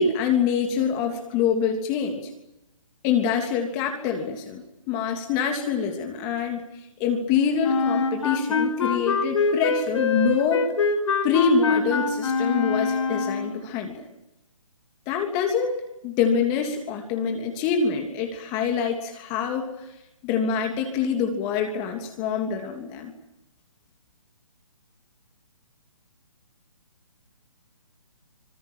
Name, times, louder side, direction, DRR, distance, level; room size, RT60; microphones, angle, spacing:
voice 1, 0.0-2.3 3.0-6.6 7.0-10.7 11.2-14.0 15.1-15.8 16.0-19.7 20.2-23.1, left 6 dB, 25° left, 4 dB, 3.1 m, -25 dB
Wind instrument woodwind instrument, 7.6-13.6, left 4 dB, 65° left, 4.9 m, -24 dB
26.0 x 20.5 x 8.9 m, 0.89 s
hypercardioid pair, 150°, 17 cm